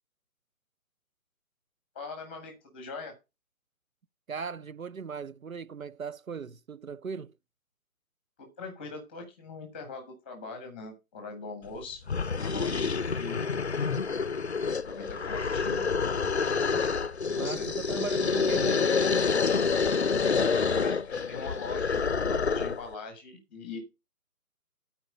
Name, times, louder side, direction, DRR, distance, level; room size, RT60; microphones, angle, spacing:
voice 1, 1.9-3.1 8.4-12.0 12.4-13.4 14.9-15.8 17.3-17.7 20.7-23.8, left 3 dB, 5° left, 1.0 m, -41 dB
voice 2, 4.3-7.3 16.7-19.0, right 5 dB, 65° right, 0.6 m, -38 dB
sound 1, 11.7-11.8 12.1-22.9, left 5 dB, 50° left, 0.5 m, -27 dB
12.5 x 4.5 x 5.4 m
figure-of-eight pair, 145°, 45 cm